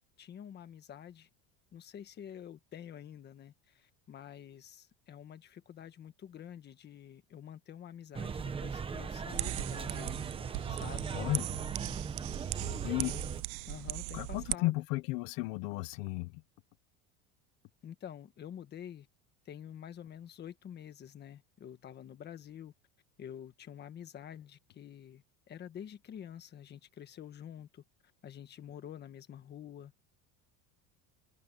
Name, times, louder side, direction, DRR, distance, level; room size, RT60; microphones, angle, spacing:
voice 1, 0.2-1.3 1.7-10.2 10.7-11.1 12.6-14.8 17.8-19.1 19.4-22.7 23.2-27.8 28.2-29.9, left 9 dB, 25° left, 1.5 m, -48 dB
sound 1, 8.1-13.4, right 6 dB, 15° right, 0.9 m, -38 dB
sound 2, 9.3-14.5, right 28 dB, 60° right, 0.5 m, -39 dB
voice 2, 11.1-11.6 12.8-13.1 14.1-16.3, left 21 dB, 60° left, 1.1 m, -34 dB
cardioid pair, 165°, 39 cm